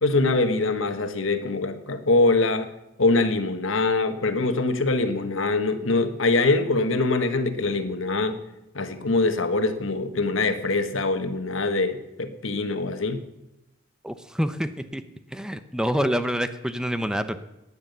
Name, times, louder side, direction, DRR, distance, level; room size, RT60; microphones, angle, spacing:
voice 1, 0.0-2.7 3.0-8.4 8.7-13.2, left 3 dB, 85° left, 9 dB, 1.4 m, -23 dB
voice 2, 14.0-15.0 15.3-17.4, equal, 5° right, 10 dB, 0.7 m, -27 dB
16.5 x 10.0 x 6.8 m, 0.92 s
head